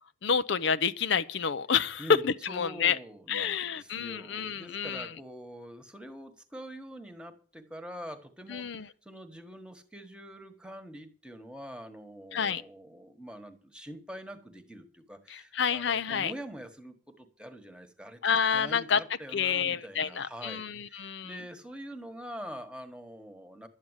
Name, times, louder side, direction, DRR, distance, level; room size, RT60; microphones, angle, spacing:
voice 1, 0.2-3.0 3.3-5.1 8.5-8.9 12.3-12.6 15.3-16.3 18.2-19.0 19.3-21.3, left 6 dB, 65° left, 0.5 m, -28 dB
voice 2, 2.0-23.7, equal, 5° right, 1.3 m, -45 dB
12.0 x 8.5 x 8.0 m
head